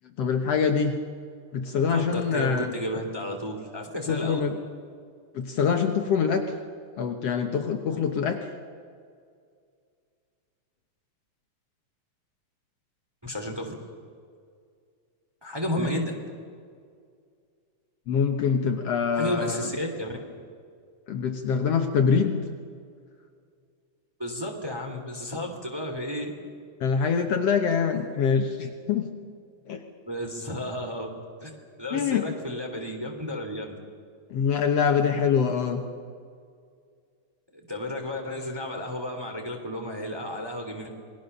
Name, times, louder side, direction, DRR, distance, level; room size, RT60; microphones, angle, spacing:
voice 1, 0.2-1.0 1.5-2.7 4.1-4.6 5.4-6.4 7.0-8.5 15.8-15.9 18.1-19.7 21.1-22.4 26.8-29.1 29.7-29.8 31.9-32.3 34.3-35.8, left 6 dB, 60° left, 4 dB, 2.0 m, -24 dB
voice 2, 1.9-4.4 13.2-13.8 15.4-16.1 19.1-20.2 24.2-26.3 30.1-31.1 31.4-31.5 31.8-33.8 37.7-40.9, left 1 dB, 10° right, 2 dB, 2.2 m, -32 dB
28.0 x 20.5 x 6.7 m, 2.2 s
omnidirectional pair, 3.5 m